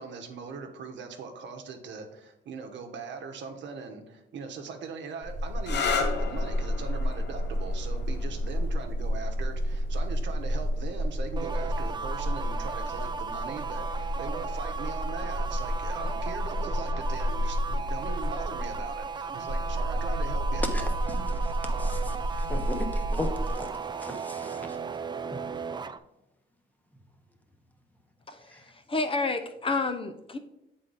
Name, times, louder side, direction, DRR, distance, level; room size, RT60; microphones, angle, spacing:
voice 1, 0.0-20.6 21.2-21.4, right 5 dB, 65° right, 1.0 m, -40 dB
sound 1, 5.2-23.5, equal, 75° left, 1.5 m, -31 dB
sound 2, 5.6-13.0 14.0-14.5 18.1-18.4, left 5 dB, 60° left, 0.8 m, -37 dB
sound 3, 11.4-26.0, right 5 dB, 20° right, 0.4 m, -36 dB
voice 2, 20.7-24.8 25.3-25.4 28.5-28.7, left 2 dB, 10° left, 1.0 m, -38 dB
voice 3, 28.9-30.4, left 3 dB, 25° left, 0.5 m, -29 dB
7.5 x 4.0 x 4.0 m
cardioid pair, 90°, 20 cm